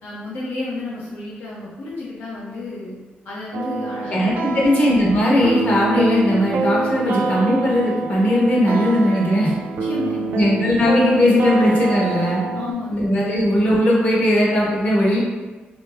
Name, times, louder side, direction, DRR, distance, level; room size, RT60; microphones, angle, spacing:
voice 1, 0.0-2.9 3.2-4.7 9.8-10.4 12.5-13.1, left 2 dB, 75° left, -6 dB, 0.7 m, -31 dB
sound 1, 3.5-12.7, right 3 dB, 70° right, 0.3 m, -26 dB
voice 2, 4.1-9.5 10.3-12.4 12.9-15.2, left 1 dB, 45° left, -5 dB, 1.1 m, -18 dB
3.6 x 3.5 x 2.4 m, 1.3 s
wide cardioid pair, 155°, 4 cm